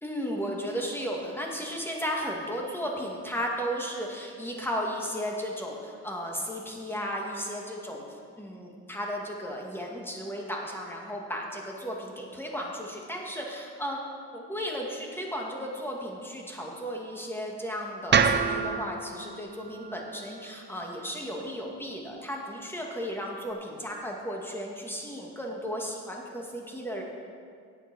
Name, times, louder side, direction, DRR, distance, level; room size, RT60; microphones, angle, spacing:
voice 1, 0.0-14.0 14.3-27.0, equal, 5° left, -1 dB, 2.1 m, -35 dB
sound 1, 18.1-22.3, right 6 dB, 35° right, 0.7 m, -29 dB
10.0 x 7.9 x 6.2 m, 2.2 s
cardioid pair, 90°, 30 cm